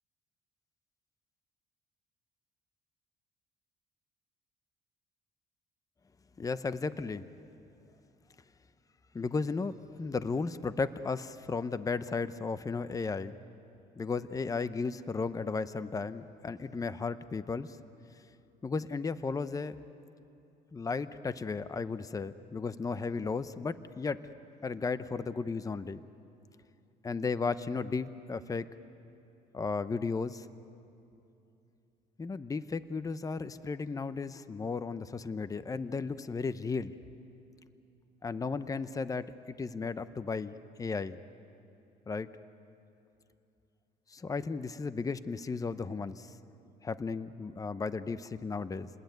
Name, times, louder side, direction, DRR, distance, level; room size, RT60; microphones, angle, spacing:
voice 1, 6.4-7.3 9.1-13.4 14.0-17.8 18.6-19.8 20.7-24.2 24.6-26.0 27.0-28.7 29.5-30.5 32.2-36.9 38.2-41.2 42.1-42.3 44.1-46.3 46.8-48.9, left 4 dB, 20° left, 13 dB, 0.8 m, -34 dB
29.0 x 20.5 x 9.3 m, 2.7 s
cardioid pair, 110°, 17 cm